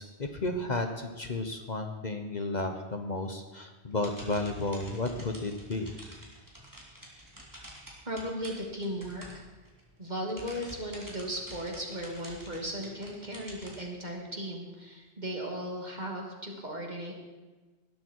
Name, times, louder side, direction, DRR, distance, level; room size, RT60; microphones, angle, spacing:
voice 1, 0.0-5.9, left 2 dB, 40° left, 5 dB, 1.2 m, -33 dB
sound 1, 3.9-9.8 10.2-13.8, right 1 dB, 15° right, 3.3 m, -48 dB
voice 2, 8.1-9.3 10.0-17.1, equal, 40° right, 0 dB, 2.8 m, -36 dB
20.0 x 12.0 x 4.7 m, 1.3 s
omnidirectional pair, 1.1 m